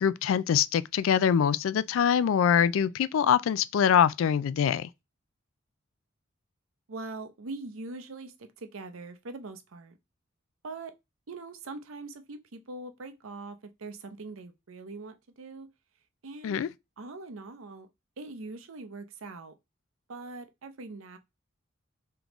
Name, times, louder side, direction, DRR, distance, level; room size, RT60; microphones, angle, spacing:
voice 1, 0.0-4.9 16.4-16.7, left 8 dB, 75° left, 0.3 m, -24 dB
voice 2, 6.9-10.0 10.6-10.9 11.3-15.7 16.2-16.6 17.0-17.9 18.2-19.5 20.1-21.2, right 3 dB, 80° right, 0.7 m, -42 dB
3.7 x 3.5 x 2.9 m
head